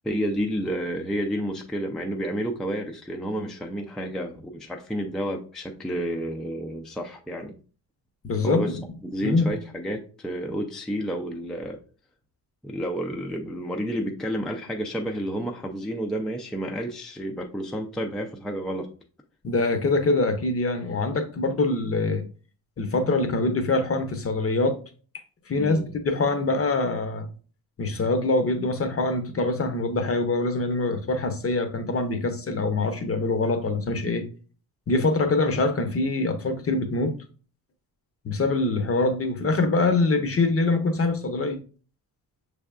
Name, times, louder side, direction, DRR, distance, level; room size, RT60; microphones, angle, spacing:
voice 1, 0.0-7.5 8.4-11.8 12.6-18.9 25.6-25.9, equal, ahead, 0.4 m, -30 dB
voice 2, 8.2-8.7 9.2-9.5 19.4-22.2 22.8-24.8 25.5-27.3 27.8-34.2 34.9-37.2 38.2-41.6, left 3 dB, 35° left, 0.7 m, -24 dB
6.2 x 3.4 x 2.4 m
cardioid pair, 105°, 40 cm